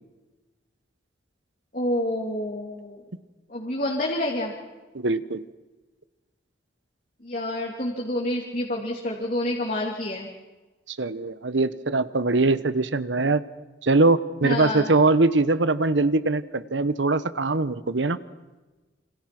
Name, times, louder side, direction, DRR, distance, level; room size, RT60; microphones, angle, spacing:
voice 1, 1.7-3.0 3.5-4.5 7.2-10.3 14.4-14.9, left 1 dB, 45° left, -1 dB, 2.8 m, -28 dB
voice 2, 4.9-5.4 10.9-13.4 13.8-18.2, right 3 dB, 75° right, 15 dB, 1.1 m, -22 dB
28.0 x 26.0 x 6.1 m, 1.2 s
head